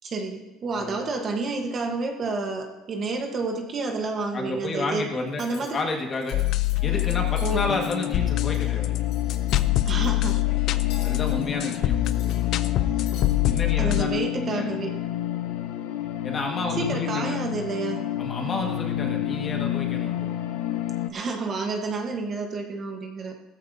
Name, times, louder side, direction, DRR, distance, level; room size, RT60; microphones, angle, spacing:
voice 1, 0.0-5.0 5.4-5.8 7.4-7.6 9.9-10.4 13.8-15.0 16.8-18.0 21.1-23.3, right 3 dB, 25° right, 2 dB, 1.2 m, -29 dB
voice 2, 4.3-6.4 6.8-9.0 11.0-12.7 13.4-14.7 16.2-17.4 18.2-20.2, left 3 dB, 25° left, 1 dB, 1.7 m, -31 dB
Cutlery silverware, 5.3-5.7 6.1-6.7 7.0-8.6 8.9-9.7 10.0-10.3 10.9-11.5 11.9-12.8 13.1-13.3, left 6 dB, 65° left, 4.1 m, -46 dB
sound 1, 6.3-14.0, left 15 dB, 45° left, 0.5 m, -24 dB
sound 2, 6.8-21.1, left 12 dB, 90° left, 0.9 m, -30 dB
16.5 x 14.0 x 2.7 m, 1.1 s
cardioid pair, 175°, 0 cm